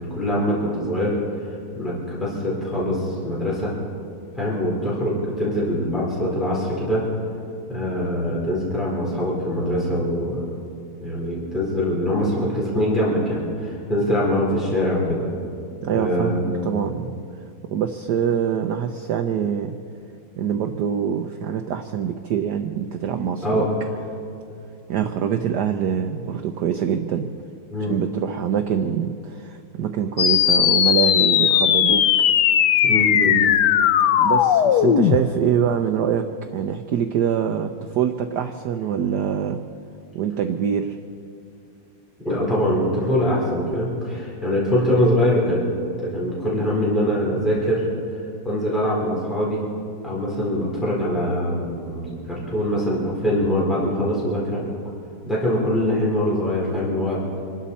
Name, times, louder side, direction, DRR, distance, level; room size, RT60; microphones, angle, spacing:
voice 1, 0.0-3.7 4.3-7.0 7.7-10.6 11.0-15.3 15.9-16.6 23.4-23.7 27.7-27.9 32.8-33.4 42.2-45.7 46.0-47.9 48.4-49.6 50.0-54.6 55.3-57.2, equal, ahead, -6 dB, 4.1 m, -23 dB
voice 2, 15.8-17.2 17.7-19.7 20.4-23.7 24.9-27.3 27.9-32.0 34.2-39.6 40.1-41.0, right 8 dB, 65° right, 6 dB, 1.0 m, -24 dB
sound 1, 30.2-35.2, left 10 dB, 70° left, 1.0 m, -17 dB
26.5 x 12.5 x 4.2 m, 2.5 s
omnidirectional pair, 2.4 m